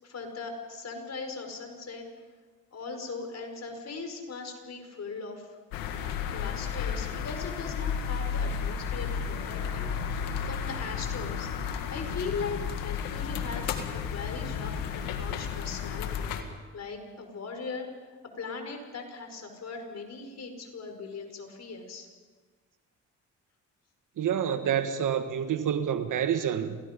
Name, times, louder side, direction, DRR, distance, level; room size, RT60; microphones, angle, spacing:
voice 1, 0.0-2.0 2.7-5.6 6.3-17.9 18.4-22.1, left 4 dB, 50° left, 5 dB, 5.3 m, -39 dB
sound 1, 5.7-16.4, left 7 dB, 90° left, 1.8 m, -33 dB
voice 2, 24.2-26.8, right 8 dB, 65° right, 9 dB, 1.7 m, -28 dB
28.0 x 19.0 x 5.4 m, 1.4 s
supercardioid pair, 65°, 33 cm